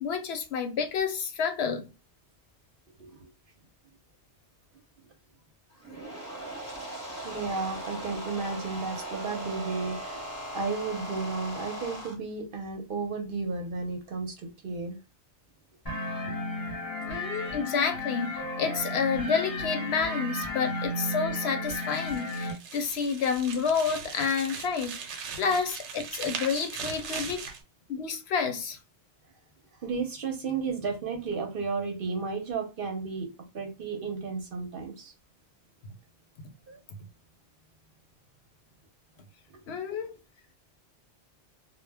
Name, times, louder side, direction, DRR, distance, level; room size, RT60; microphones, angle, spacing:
voice 1, 0.0-1.8 17.1-27.5 27.9-28.8 39.7-40.1, left 6 dB, 70° left, 0.8 m, -29 dB
sound 1, 5.7-12.1, right 1 dB, 15° right, 0.7 m, -39 dB
voice 2, 7.2-10.2 10.5-15.0 15.9-16.0 16.3-16.4 29.8-33.3 33.5-35.1 36.7-36.8, right 4 dB, 60° right, 0.7 m, -33 dB
sound 2, 15.9-22.5, left 1 dB, 20° left, 0.7 m, -33 dB
sound 3, 21.7-27.6, right 6 dB, 85° right, 0.9 m, -39 dB
2.1 x 2.1 x 3.3 m
omnidirectional pair, 1.1 m